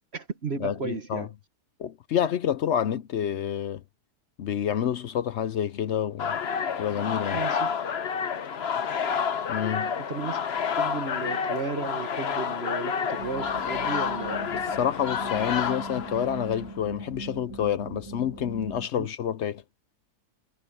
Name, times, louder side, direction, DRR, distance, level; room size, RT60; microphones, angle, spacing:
voice 1, 0.0-1.3 7.3-7.7 10.0-10.4 10.8-14.6 19.0-19.1, right 4 dB, 45° right, 1.5 m, -34 dB
voice 2, 0.6-1.3 1.8-3.8 4.4-6.4 6.8-7.4 9.5-9.9 14.5-19.6, left 9 dB, 60° left, 0.7 m, -28 dB
sound 1, 6.2-16.7, left 7 dB, 45° left, 1.1 m, -29 dB
sound 2, 13.2-18.9, right 3 dB, 15° right, 2.8 m, -40 dB
omnidirectional pair, 1.7 m